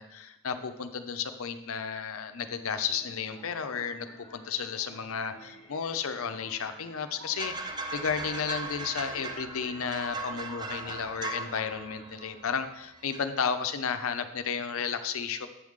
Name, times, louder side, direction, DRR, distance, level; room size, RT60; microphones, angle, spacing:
voice 1, 0.0-4.1 4.3-15.5, left 6 dB, 65° left, 8 dB, 0.6 m, -33 dB
sound 1, 2.7-13.3, left 1 dB, 20° left, 1.2 m, -52 dB
sound 2, 7.4-12.7 13.0-13.3, right 2 dB, 20° right, 0.5 m, -38 dB
8.4 x 6.4 x 3.7 m, 0.89 s
head